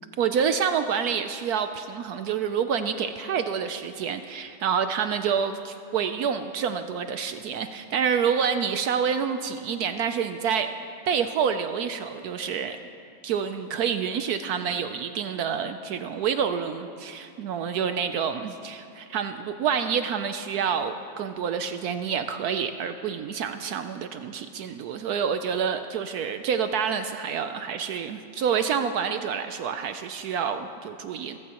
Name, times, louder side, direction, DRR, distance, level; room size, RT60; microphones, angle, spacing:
voice 1, 0.2-10.7 11.1-12.8 13.2-31.4, right 7 dB, 70° right, 8 dB, 1.0 m, -28 dB
24.5 x 14.5 x 2.9 m, 2.4 s
omnidirectional pair, 1.9 m